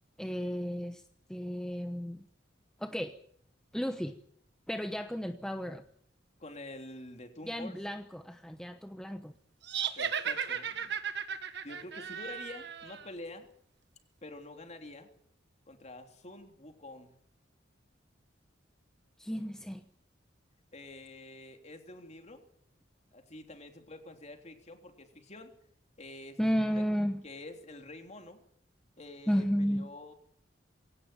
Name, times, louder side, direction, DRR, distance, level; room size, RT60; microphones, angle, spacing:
voice 1, 0.2-1.0 1.3-2.2 2.8-3.2 3.7-4.2 4.7-5.8 7.5-9.3 19.2-19.8 26.4-27.2 29.3-29.9, equal, 5° left, 6 dB, 1.0 m, -33 dB
voice 2, 6.4-7.8 10.0-10.9 11.6-13.5 14.2-15.1 15.7-17.1 20.7-22.4 23.1-25.5 26.0-26.8 27.2-28.4 29.0-30.1, left 2 dB, 35° left, 5 dB, 3.2 m, -47 dB
sound 1, 9.6-13.1, right 7 dB, 60° right, 1.7 m, -35 dB
22.0 x 18.0 x 9.0 m, 0.68 s
head